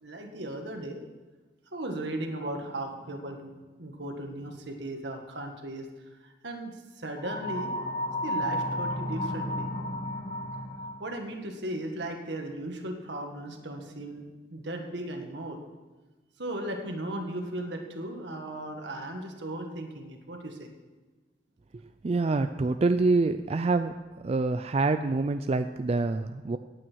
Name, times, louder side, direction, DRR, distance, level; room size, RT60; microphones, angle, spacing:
voice 1, 0.0-1.0 1.7-5.9 6.2-7.7 8.2-9.7 11.0-15.6 16.4-20.7, right 1 dB, 75° right, 3 dB, 1.8 m, -36 dB
sound 1, 7.2-11.1, left 1 dB, 35° left, 1.3 m, -32 dB
voice 2, 22.0-23.9 24.2-26.6, right 3 dB, 35° right, 9 dB, 0.4 m, -26 dB
17.0 x 8.9 x 4.6 m, 1.2 s
head